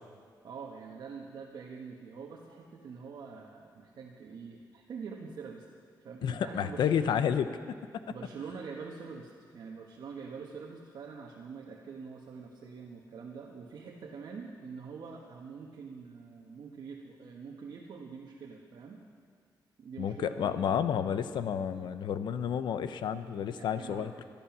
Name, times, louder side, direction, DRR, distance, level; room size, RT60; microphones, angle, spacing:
voice 1, 0.4-5.7 6.0-7.2 8.1-19.0 19.8-20.6 23.5-24.1, right 5 dB, 70° right, -1 dB, 1.4 m, -45 dB
voice 2, 6.2-7.6 20.0-24.1, left 8 dB, 85° left, 11 dB, 0.8 m, -30 dB
19.5 x 12.5 x 6.1 m, 2.1 s
wide cardioid pair, 130°, 8 cm